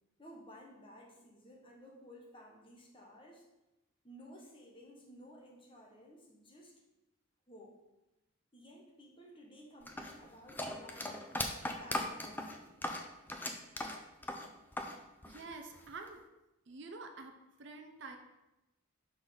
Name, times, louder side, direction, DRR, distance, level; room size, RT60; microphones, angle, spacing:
voice 1, 0.2-3.5 4.0-6.8 7.5-7.8 8.5-11.2 11.7-12.8, equal, 25° left, -1 dB, 1.1 m, -55 dB
sound 1, 9.9-15.0 15.2-16.1, left 1 dB, 10° left, 0.4 m, -39 dB
voice 2, 15.3-16.2 16.7-17.3 17.6-18.2, right 3 dB, 55° right, 4 dB, 0.6 m, -47 dB
6.1 x 4.0 x 5.1 m, 0.98 s
head